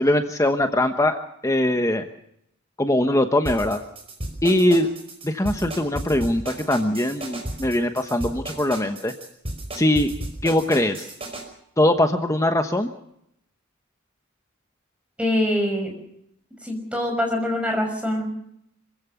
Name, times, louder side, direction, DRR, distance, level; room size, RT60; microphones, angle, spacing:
voice 1, 0.0-2.1 2.8-3.8 4.4-4.9 5.2-9.1 9.7-10.1 10.4-11.1 11.8-12.9, left 1 dB, 15° left, 6 dB, 1.1 m, -21 dB
sound 1, 3.5-11.4, right 1 dB, 30° right, 5.3 m, -33 dB
voice 2, 15.2-15.9 16.6-18.3, left 1 dB, 5° right, 2 dB, 5.9 m, -24 dB
26.0 x 15.5 x 7.1 m, 0.76 s
head